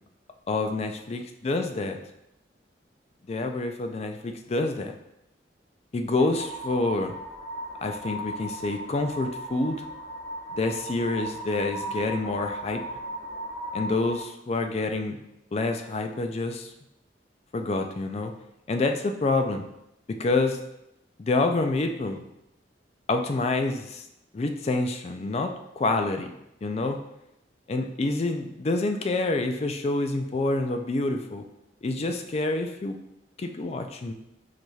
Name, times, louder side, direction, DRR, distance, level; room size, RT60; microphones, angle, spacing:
voice 1, 0.5-2.0 3.3-4.9 5.9-7.1 7.8-9.8 10.5-12.8 13.7-15.2 15.5-16.7 17.5-18.3 18.7-19.7 20.1-20.6 21.2-22.2 23.1-24.0 24.3-26.3 26.6-27.0 27.7-31.4 31.8-33.0 33.4-34.1, left 2 dB, 35° left, 5 dB, 0.4 m, -27 dB
sound 1, 6.2-14.2, right 1 dB, 10° right, 1.2 m, -36 dB
4.7 x 4.0 x 2.3 m, 0.83 s
head